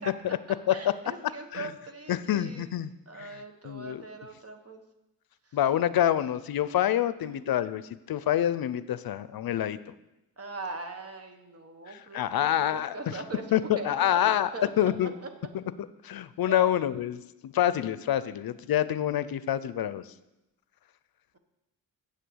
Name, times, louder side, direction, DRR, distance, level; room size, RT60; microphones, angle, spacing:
voice 1, 0.7-2.7 3.1-4.8 5.5-5.6 7.2-7.5 10.4-15.3 16.5-16.7, right 3 dB, 40° right, 6 dB, 1.2 m, -41 dB
voice 2, 2.1-2.9 3.2-4.0 5.5-7.8 8.1-9.8 11.9-13.2 13.5-14.5 14.8-15.1 16.0-20.0, left 11 dB, 75° left, 15 dB, 0.5 m, -27 dB
7.7 x 6.6 x 7.8 m, 0.94 s
wide cardioid pair, 105°, 37 cm